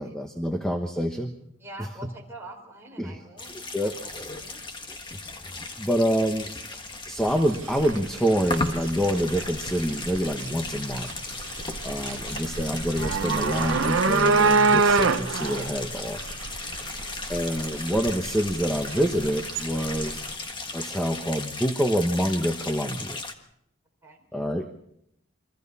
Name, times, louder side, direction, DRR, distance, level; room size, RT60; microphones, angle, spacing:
voice 1, 0.0-1.3 3.0-3.2 3.7-3.9 5.4-6.5 7.1-11.1 11.8-16.2 17.3-20.2 20.7-23.2 24.3-24.7, equal, 5° left, 4 dB, 1.2 m, -26 dB
voice 2, 1.6-4.6 12.1-12.4 16.9-17.2 20.1-20.3 24.0-24.3, right 2 dB, 10° right, 0 dB, 4.1 m, -46 dB
sound 1, 3.4-23.3, left 3 dB, 20° left, 1.5 m, -36 dB
sound 2, 7.2-20.3, right 4 dB, 70° right, 0.8 m, -27 dB
29.5 x 24.0 x 4.2 m, 0.76 s
head